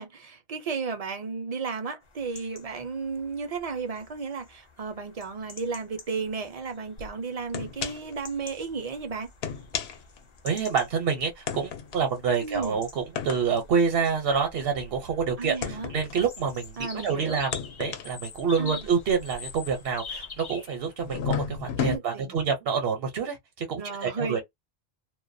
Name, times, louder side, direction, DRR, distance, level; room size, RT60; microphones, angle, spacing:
voice 1, 0.0-9.3 12.4-12.8 15.4-15.9 16.8-17.4 18.6-18.8 21.8-22.4 23.8-24.4, right 4 dB, 50° right, 0.5 m, -33 dB
sound 1, 2.0-21.1, left 5 dB, 35° left, 0.5 m, -47 dB
sound 2, 7.0-7.1 7.5-8.2 8.5-8.7 9.3-10.8 11.5-16.9 17.4-20.5 21.0-22.0, left 7 dB, 75° left, 0.8 m, -34 dB
voice 2, 10.4-17.5 17.8-24.4, right 6 dB, 70° right, 0.9 m, -27 dB
2.2 x 2.2 x 2.5 m
omnidirectional pair, 1.1 m